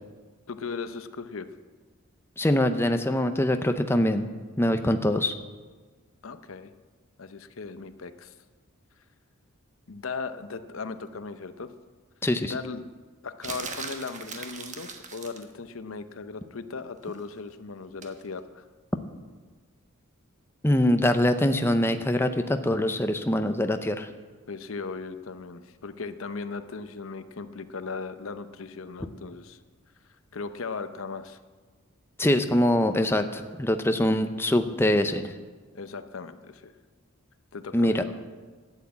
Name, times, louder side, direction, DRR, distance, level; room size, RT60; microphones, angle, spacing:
voice 1, 0.5-1.5 6.2-6.7 7.2-8.3 9.9-11.7 12.4-12.8 13.2-18.6 24.5-29.6 30.3-31.4 35.7-36.7 37.5-38.1, left 4 dB, 70° left, 11 dB, 0.7 m, -37 dB
voice 2, 2.4-4.3 4.6-5.3 12.2-12.5 20.6-24.1 32.2-35.3 37.7-38.0, left 1 dB, 10° left, 7 dB, 0.6 m, -23 dB
sound 1, 13.4-15.5 18.0-18.2, right 5 dB, 35° right, 1.2 m, -39 dB
12.0 x 8.4 x 8.5 m, 1.4 s
head